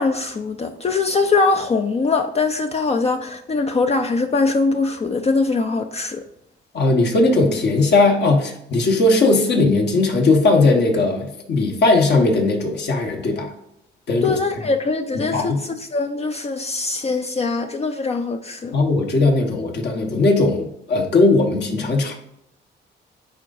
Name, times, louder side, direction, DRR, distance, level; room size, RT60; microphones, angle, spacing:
voice 1, 0.0-6.2 14.2-18.8, left 3 dB, 30° left, 0.5 m, -22 dB
voice 2, 6.7-13.5 14.1-14.7 15.1-15.6 18.7-22.2, left 2 dB, 60° left, 1.4 m, -18 dB
9.5 x 3.8 x 2.6 m
cardioid pair, 90°, 20 cm